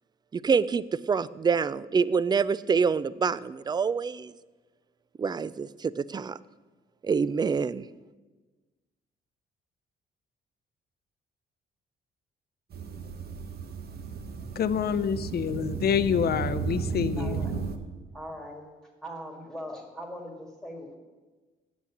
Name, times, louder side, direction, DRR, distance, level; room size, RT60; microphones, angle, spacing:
voice 1, 0.3-4.3 5.2-6.4 7.0-7.9, right 5 dB, 20° right, 18 dB, 0.3 m, -26 dB
sound 1, 12.7-17.8, right 5 dB, 50° right, 1.0 m, -34 dB
voice 2, 14.6-17.4, left 7 dB, 55° left, 14 dB, 0.6 m, -27 dB
voice 3, 17.2-17.5 18.1-18.7 19.0-21.0, equal, 5° left, 0 dB, 1.9 m, -41 dB
8.3 x 7.8 x 7.2 m, 1.3 s
cardioid pair, 90°, 20 cm